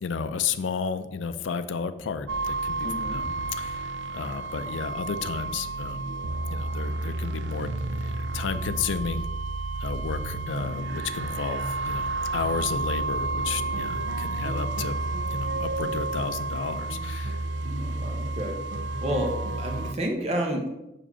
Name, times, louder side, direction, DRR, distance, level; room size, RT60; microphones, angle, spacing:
voice 1, 0.0-3.2 3.6-6.1 6.5-9.3 9.8-15.0 15.3-17.4, left 5 dB, 90° left, 10 dB, 0.4 m, -32 dB
sound 1, 2.3-19.9, right 2 dB, 75° right, 0.5 m, -31 dB
voice 2, 2.8-3.3 17.6-18.6 19.0-20.7, equal, 35° right, 1 dB, 1.3 m, -30 dB
5.4 x 5.0 x 5.5 m, 0.93 s
head